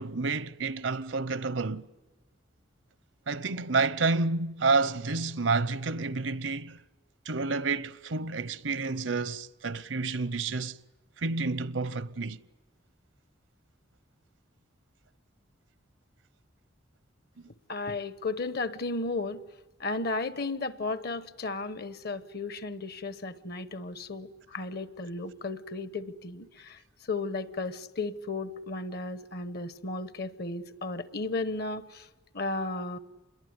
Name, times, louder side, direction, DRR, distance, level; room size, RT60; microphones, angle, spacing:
voice 1, 0.0-1.9 3.3-6.8 7.3-10.8 11.2-12.4, right 3 dB, 80° right, 0.8 m, -29 dB
voice 2, 17.7-19.4 19.8-26.8 27.1-32.1 32.3-33.0, left 3 dB, 55° left, 1.2 m, -34 dB
27.0 x 21.5 x 9.7 m
head